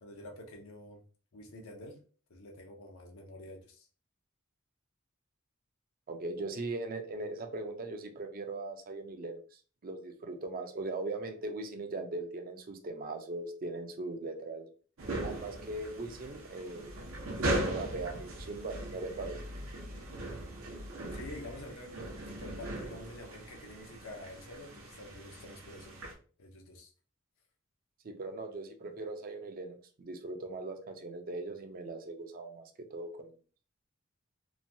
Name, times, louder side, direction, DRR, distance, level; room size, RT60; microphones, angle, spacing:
voice 1, 0.0-1.0 1.3-2.0 2.3-3.9 21.1-26.0 26.4-26.9, left 1 dB, 80° left, 2 dB, 0.6 m, -48 dB
voice 2, 6.1-14.7 15.2-16.9 17.4-19.4 28.0-33.3, right 2 dB, 45° right, 6 dB, 0.4 m, -40 dB
sound 1, 15.0-26.1, right 1 dB, 80° right, 0.7 m, -39 dB
3.0 x 2.2 x 2.6 m, 0.40 s
head